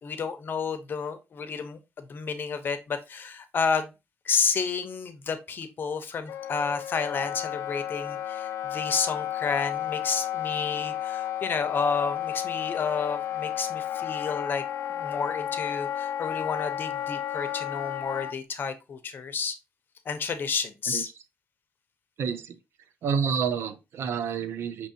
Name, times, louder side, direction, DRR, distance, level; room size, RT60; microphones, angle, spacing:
voice 1, 0.0-3.9 4.2-14.6 14.9-19.6 20.1-21.1, left 5 dB, 50° left, 0.8 m, -30 dB
Wind instrument woodwind instrument, 6.3-18.3, left 11 dB, 75° left, 0.3 m, -32 dB
voice 2, 22.2-22.6 23.0-24.9, right 6 dB, 70° right, 0.6 m, -29 dB
6.1 x 3.0 x 2.8 m
cardioid pair, 110°, 4 cm